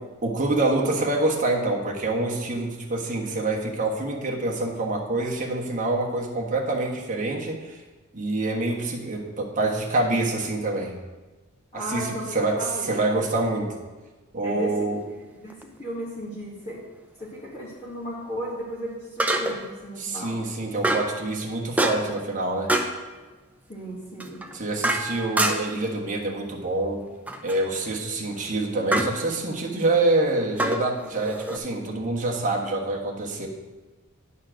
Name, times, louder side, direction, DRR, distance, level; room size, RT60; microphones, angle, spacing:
voice 1, 0.2-7.8 8.1-10.9 11.7-13.7 14.3-15.0 20.0-22.7 24.5-27.0 27.4-33.5, right 2 dB, 35° right, -1 dB, 1.3 m, -26 dB
voice 2, 11.7-12.9 14.4-16.8 17.2-20.3 23.7-24.4, equal, 30° left, -6 dB, 1.8 m, -35 dB
sound 1, 15.5-15.6 19.2-19.7 20.8-21.2 21.8-22.2 22.7-23.0 24.2-25.8 27.3-27.6 28.9-29.2 30.6-31.6, right 1 dB, 5° right, 0.5 m, -26 dB
10.0 x 4.3 x 6.2 m, 1.3 s
head